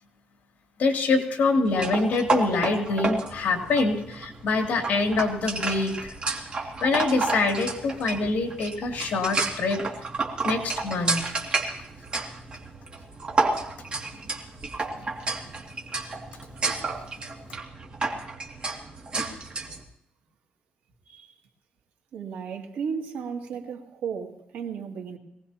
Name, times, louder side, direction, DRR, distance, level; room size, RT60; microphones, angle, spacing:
voice 1, 0.8-6.1 6.8-9.8 10.4-11.2, left 3 dB, 60° left, 3 dB, 2.8 m, -25 dB
sound 1, 1.7-19.8, right 3 dB, 35° right, 2.3 m, -31 dB
voice 2, 22.1-25.2, right 6 dB, 85° right, 2 dB, 2.3 m, -34 dB
23.0 x 18.0 x 2.9 m, 0.79 s
cardioid pair, 135°, 3 cm